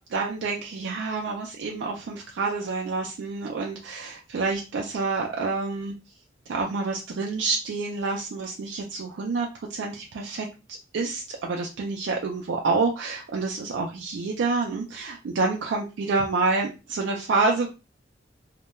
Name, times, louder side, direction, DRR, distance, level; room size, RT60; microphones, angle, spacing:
voice 1, 0.1-5.9 6.5-10.5 10.9-17.7, right 3 dB, 65° right, 0 dB, 0.3 m, -28 dB
2.2 x 2.1 x 2.9 m, 0.30 s
head